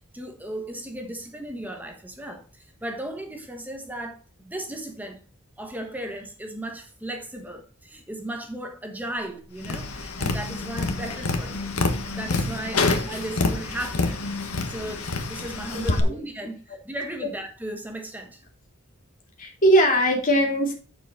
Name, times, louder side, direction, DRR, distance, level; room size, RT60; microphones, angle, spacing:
voice 1, 0.1-5.2 5.6-18.4, right 1 dB, 10° right, 4 dB, 1.3 m, -36 dB
Tap, 9.6-16.0, left 3 dB, 85° left, 1.4 m, -27 dB
voice 2, 15.7-16.1 19.4-20.7, right 1 dB, 40° left, 0 dB, 2.5 m, -21 dB
7.6 x 7.0 x 4.1 m, 0.37 s
head